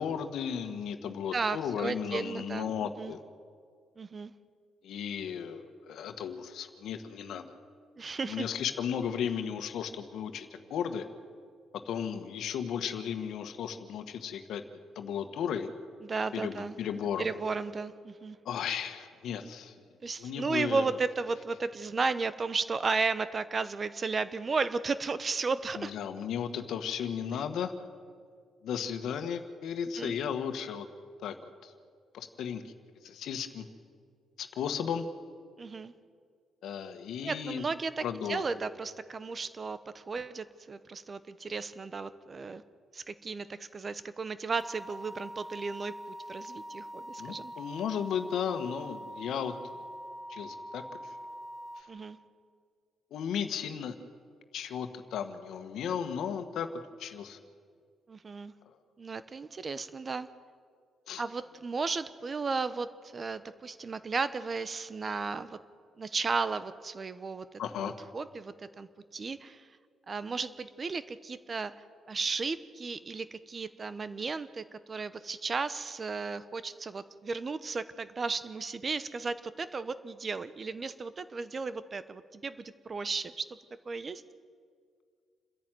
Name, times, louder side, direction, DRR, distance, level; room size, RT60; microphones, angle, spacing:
voice 1, 0.0-3.2 4.8-7.5 8.3-11.1 11.8-14.6 14.9-15.7 16.3-17.3 18.4-19.7 20.2-20.9 25.8-27.7 28.6-30.9 31.2-31.7 32.1-32.6 33.0-33.7 34.4-35.0 36.6-37.6 38.0-38.4 47.2-49.8 50.3-50.8 51.8-51.9 53.1-53.9 54.5-57.4 61.1-61.2 67.6-67.9, left 8 dB, 75° left, 8 dB, 1.6 m, -35 dB
voice 2, 1.0-3.1 4.0-4.3 8.0-8.5 16.0-16.8 17.2-18.4 20.0-25.9 30.0-30.2 35.6-35.9 37.2-42.6 42.9-47.5 51.9-52.2 58.1-58.5 59.0-60.3 61.2-65.6 66.0-69.7 70.1-71.7 72.1-83.4 83.9-84.2, right 4 dB, 35° right, 14 dB, 1.0 m, -34 dB
sound 1, 44.6-51.8, equal, 5° left, 1.4 m, -44 dB
28.5 x 11.0 x 9.2 m, 2.1 s
cardioid pair, 90°, 0 cm